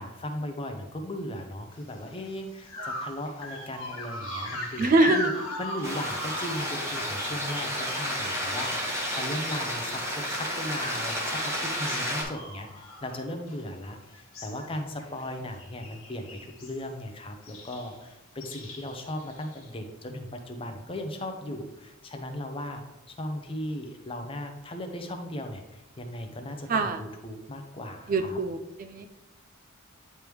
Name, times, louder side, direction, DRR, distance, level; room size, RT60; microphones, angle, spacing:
voice 1, 0.0-5.3 5.6-22.8 23.1-28.4, left 1 dB, 25° left, 5 dB, 0.6 m, -37 dB
sound 1, 2.0-2.2 2.7-8.8 9.1-13.9 14.1-14.7 15.0-15.3 15.5-16.8 17.4-17.9 18.4-19.7, left 2 dB, 75° left, 1.5 m, -39 dB
voice 2, 4.8-5.2 26.7-27.0 28.1-29.1, right 3 dB, 40° right, 8 dB, 0.3 m, -24 dB
sound 2, 5.8-12.2, equal, 15° right, 1.2 m, -31 dB
9.3 x 3.4 x 3.1 m, 0.98 s
head